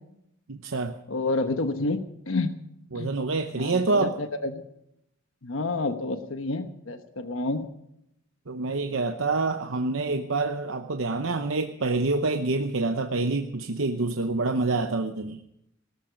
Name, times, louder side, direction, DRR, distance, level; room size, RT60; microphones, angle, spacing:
voice 1, 0.5-1.0 2.9-4.2 8.5-15.4, right 3 dB, 70° right, 5 dB, 0.9 m, -27 dB
voice 2, 1.1-2.5 2.9-3.1 3.6-4.6 5.4-7.7, left 2 dB, 70° left, 8 dB, 1.1 m, -29 dB
18.0 x 13.5 x 5.1 m, 0.78 s
head